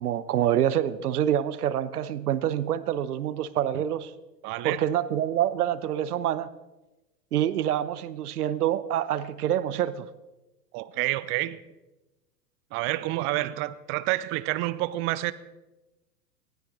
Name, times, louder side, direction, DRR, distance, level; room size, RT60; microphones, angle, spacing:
voice 1, 0.0-4.1 4.6-6.5 7.3-10.1, right 11 dB, 65° right, 16 dB, 1.0 m, -26 dB
voice 2, 4.4-4.8 10.7-11.6 12.7-15.3, right 17 dB, 25° right, 16 dB, 0.6 m, -28 dB
19.5 x 15.5 x 3.9 m, 1.1 s
figure-of-eight pair, 105°, 49 cm